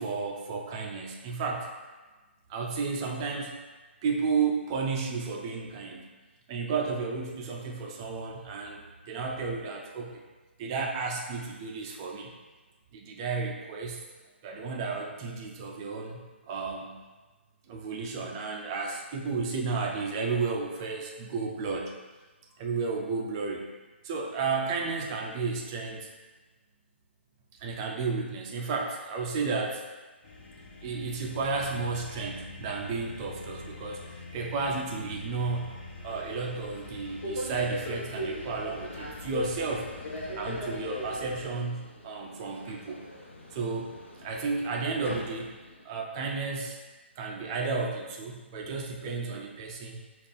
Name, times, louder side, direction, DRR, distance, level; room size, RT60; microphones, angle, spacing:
voice 1, 0.0-1.7 2.5-3.5 4.0-6.0 6.5-10.2 10.6-12.3 12.9-14.0 14.4-16.2 16.5-16.9 17.7-21.9 22.6-23.6 24.0-26.1 27.6-29.8 30.8-34.0 34.3-35.7 36.0-39.9 40.4-43.0 43.5-43.9 44.2-45.5 45.8-46.8 47.2-50.0, right 4 dB, 20° right, 0 dB, 0.4 m, -32 dB
sound 1, 30.2-41.5, left 2 dB, 40° left, 0.7 m, -45 dB
Subway metro underground, 36.1-45.8, left 1 dB, 70° left, 1.1 m, -40 dB
5.1 x 2.5 x 4.1 m, 1.3 s
hypercardioid pair, 165°, 7 cm